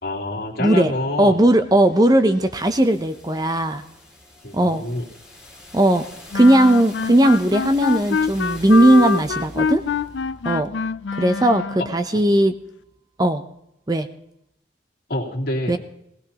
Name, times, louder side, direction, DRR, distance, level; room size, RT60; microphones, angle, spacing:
voice 1, 0.0-1.4 4.4-5.1 12.1-12.2 15.1-15.8, left 1 dB, 60° left, -2 dB, 2.8 m, -27 dB
voice 2, 0.6-0.9 1.2-3.8 4.5-4.8 5.7-6.0 6.3-9.8 10.4-10.7 11.1-12.5 13.2-13.4 13.9-14.1 15.7-15.8, right 1 dB, 20° right, 9 dB, 0.6 m, -17 dB
sound 1, 0.8-12.6, left 1 dB, 5° right, 2.6 m, -45 dB
sound 2, 6.3-12.0, left 5 dB, 80° left, 0.4 m, -25 dB
18.5 x 17.0 x 2.9 m, 0.79 s
head